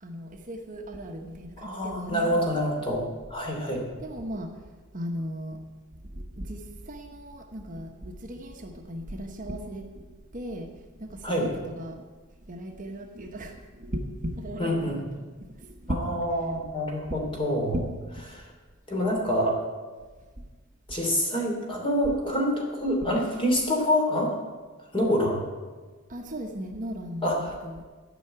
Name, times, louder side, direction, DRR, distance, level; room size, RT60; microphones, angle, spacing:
voice 1, 0.0-2.4 2.6-2.8 4.0-4.5 4.9-5.6 6.0-12.1 12.5-16.2 16.5-16.7 17.1-17.9 18.2-18.3 20.4-20.5 20.9-21.0 23.0-23.1 26.1-27.8, equal, 40° right, 3 dB, 1.1 m, -37 dB
voice 2, 1.6-3.0 3.3-3.8 11.2-11.5 14.6-15.0 15.9-17.8 18.3-18.4 18.9-19.6 20.9-24.3 24.9-25.4 27.2-27.5, equal, 25° left, 0 dB, 2.9 m, -26 dB
13.5 x 5.7 x 8.9 m, 1.4 s
head